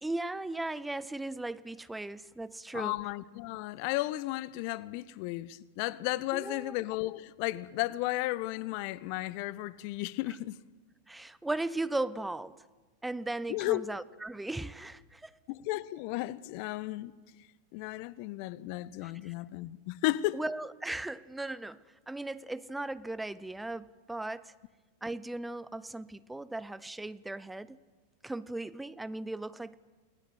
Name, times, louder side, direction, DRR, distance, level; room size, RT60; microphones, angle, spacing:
voice 1, 0.0-3.0 6.3-6.7 11.1-12.6 13.0-15.4 19.0-19.3 20.3-24.5 25.0-27.8 28.2-29.7, right 2 dB, 5° right, 0.7 m, -37 dB
voice 2, 2.7-10.6 13.5-13.9 15.5-17.1 17.7-20.4, left 18 dB, 45° left, 0.8 m, -34 dB
29.0 x 19.5 x 8.0 m
figure-of-eight pair, 90°, 0 cm